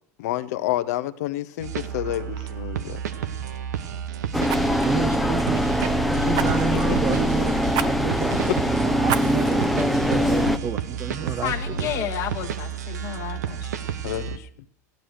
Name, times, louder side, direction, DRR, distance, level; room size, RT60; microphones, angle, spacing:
voice 1, 0.2-3.0 6.7-6.8 7.1-7.2 14.0-14.5, left 14 dB, 70° left, 13 dB, 1.0 m, -29 dB
sound 1, 1.6-14.4, right 8 dB, 85° right, 1.2 m, -31 dB
Fire, 1.8-2.0 2.3-2.5 4.5-5.9 6.3-6.9 7.7-7.9 8.3-8.4 9.0-9.7 10.2-10.3, right 11 dB, 55° right, 1.0 m, -30 dB
sound 2, 4.3-10.6, equal, ahead, 0.9 m, -23 dB
voice 2, 4.8-5.6 6.2-11.9, right 6 dB, 30° right, 16 dB, 0.9 m, -30 dB
voice 3, 11.4-13.8, left 11 dB, 55° left, 0 dB, 1.5 m, -31 dB
15.5 x 12.0 x 6.5 m, 0.67 s
hypercardioid pair, 100°, 9 cm